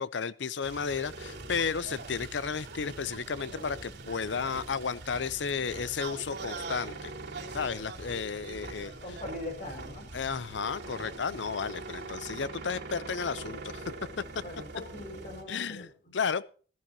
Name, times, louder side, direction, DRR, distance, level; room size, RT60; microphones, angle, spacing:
voice 1, 0.0-7.1 7.5-9.2 10.1-13.9 15.5-16.4, left 6 dB, 80° left, 17 dB, 0.6 m, -33 dB
sound 1, 0.6-15.4, right 3 dB, 65° right, 3.0 m, -42 dB
voice 2, 9.0-10.1 14.4-16.1, left 1 dB, 45° left, 2 dB, 5.9 m, -41 dB
15.0 x 14.0 x 2.8 m, 0.39 s
head